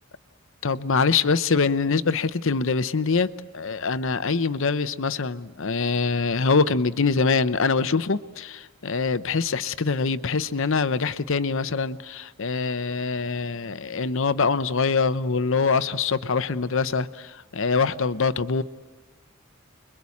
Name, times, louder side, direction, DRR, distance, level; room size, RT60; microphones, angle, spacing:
voice 1, 0.6-18.6, left 4 dB, 65° left, 13 dB, 0.8 m, -24 dB
30.0 x 22.5 x 8.5 m, 1.2 s
head